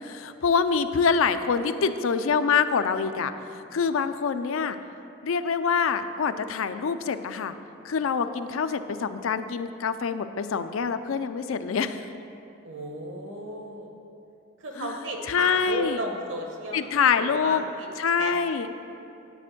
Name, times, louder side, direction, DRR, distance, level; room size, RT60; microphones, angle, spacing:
voice 1, 0.0-4.8 5.2-7.5 7.8-12.1 14.8-14.9 15.3-16.0 16.7-17.6 18.0-18.7, left 6 dB, 80° left, 10 dB, 0.4 m, -25 dB
voice 2, 1.5-1.9 12.6-13.9 14.6-17.9 18.2-18.3, right 1 dB, 70° right, 1 dB, 1.3 m, -34 dB
9.9 x 4.4 x 7.7 m, 2.7 s
head